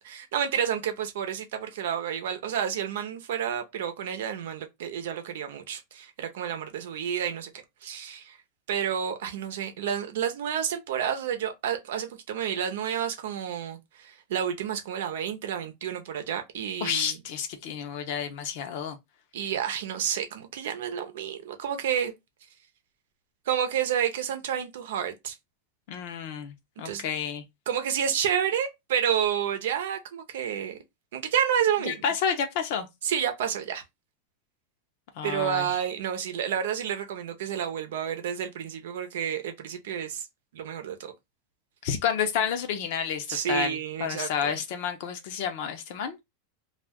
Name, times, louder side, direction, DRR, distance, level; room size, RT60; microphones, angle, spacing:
voice 1, 0.0-7.5 7.8-8.4 8.7-17.2 19.3-22.1 23.5-25.3 26.8-27.1 27.7-30.8 31.1-32.0 33.0-33.8 35.2-40.2 40.5-41.1 43.3-44.5, right 9 dB, 80° right, 0.7 m, -30 dB
voice 2, 16.8-19.0 25.9-27.4 31.8-32.9 35.2-35.8 41.8-46.2, left 7 dB, 65° left, 0.7 m, -30 dB
2.4 x 2.2 x 3.5 m
hypercardioid pair, 120°, 0 cm